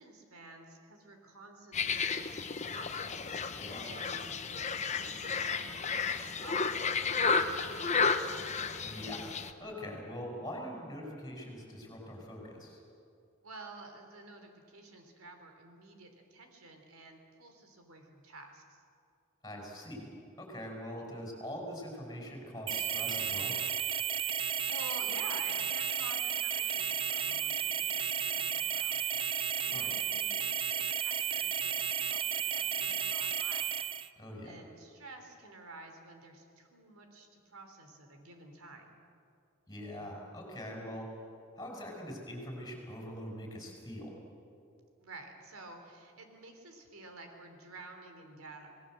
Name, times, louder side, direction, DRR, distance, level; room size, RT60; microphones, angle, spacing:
voice 1, 0.0-3.2 3.8-8.0 13.4-18.8 24.5-29.2 29.6-33.8 34.4-38.9 45.0-48.7, right 2 dB, 80° right, 4 dB, 3.5 m, -51 dB
sound 1, 1.7-9.5, left 5 dB, 30° left, 1.0 m, -32 dB
voice 2, 3.5-3.8 8.8-9.3 9.6-12.8 19.4-20.1 20.4-23.5 29.7-29.9 34.2-34.5 39.7-41.1 41.6-44.2, equal, 15° left, 1 dB, 5.8 m, -43 dB
sound 2, 22.7-34.1, right 8 dB, 25° right, 0.6 m, -33 dB
27.5 x 18.5 x 7.8 m, 2.5 s
head